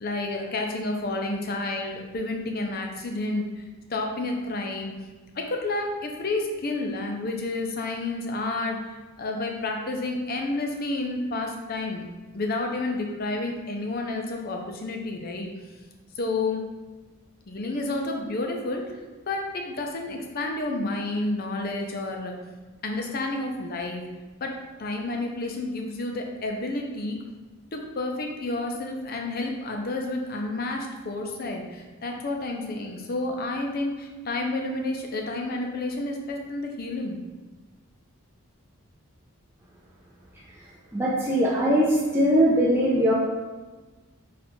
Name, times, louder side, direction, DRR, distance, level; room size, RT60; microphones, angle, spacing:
voice 1, 0.0-4.9 5.3-8.8 9.2-12.0 12.3-15.5 16.2-16.6 17.5-18.8 19.3-22.3 22.8-24.0 24.4-27.2 27.7-37.2, left 2 dB, 45° left, 2 dB, 0.5 m, -30 dB
voice 2, 40.9-43.1, equal, 10° right, -6 dB, 0.4 m, -21 dB
4.2 x 2.4 x 4.3 m, 1.2 s
head